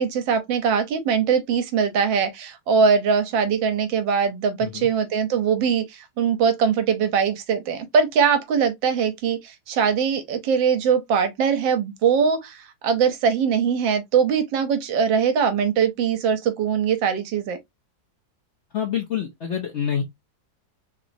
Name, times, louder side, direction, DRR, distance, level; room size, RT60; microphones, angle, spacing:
voice 1, 0.0-17.6, right 6 dB, 80° right, 1.5 m, -22 dB
voice 2, 4.6-4.9 18.7-20.0, left 8 dB, 70° left, 0.6 m, -27 dB
3.6 x 3.0 x 2.5 m
omnidirectional pair, 2.1 m